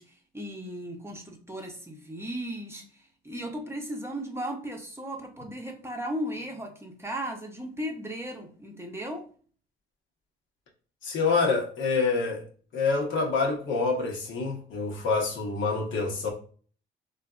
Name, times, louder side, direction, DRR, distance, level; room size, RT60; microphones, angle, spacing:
voice 1, 0.0-9.2, equal, 10° right, 0.7 m, -36 dB
voice 2, 11.0-12.4 12.7-16.3, left 4 dB, 75° left, 0.9 m, -26 dB
3.3 x 2.5 x 2.4 m
cardioid pair, 90°, 20 cm